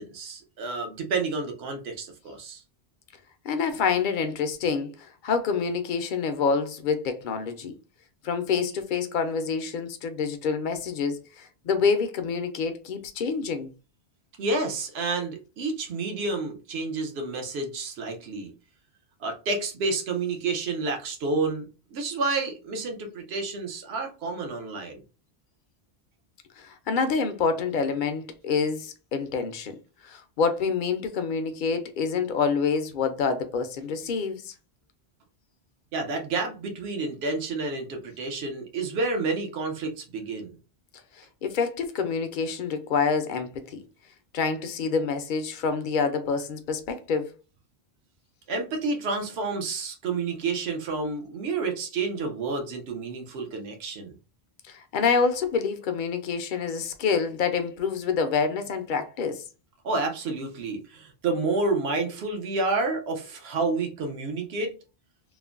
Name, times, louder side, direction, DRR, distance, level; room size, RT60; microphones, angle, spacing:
voice 1, 0.0-2.6 14.4-18.5 19.2-21.7 21.9-25.0 35.9-40.6 48.5-54.1 59.8-64.7, right 3 dB, 75° right, 0.9 m, -29 dB
voice 2, 3.4-7.7 8.2-13.7 26.6-29.8 30.0-34.5 41.4-43.8 44.3-47.3 54.7-59.4, left 5 dB, 60° left, 0.6 m, -27 dB
3.1 x 2.1 x 2.4 m
omnidirectional pair, 1.1 m